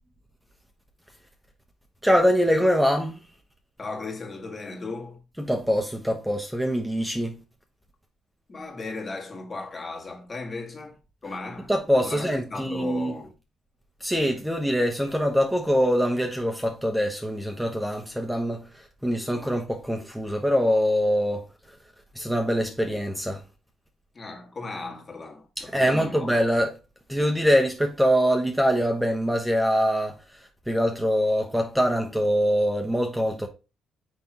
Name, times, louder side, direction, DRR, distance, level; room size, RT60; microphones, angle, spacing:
voice 1, 2.0-3.2 5.4-7.4 11.7-13.1 14.0-21.8 22.1-23.4 25.6-26.7 27.1-33.5, equal, 5° right, 1.1 m, -24 dB
voice 2, 3.8-5.2 8.5-11.7 12.0-13.3 19.3-19.5 24.1-26.4, left 3 dB, 35° left, 1.9 m, -36 dB
9.7 x 3.4 x 3.0 m
cardioid pair, 90°, 0 cm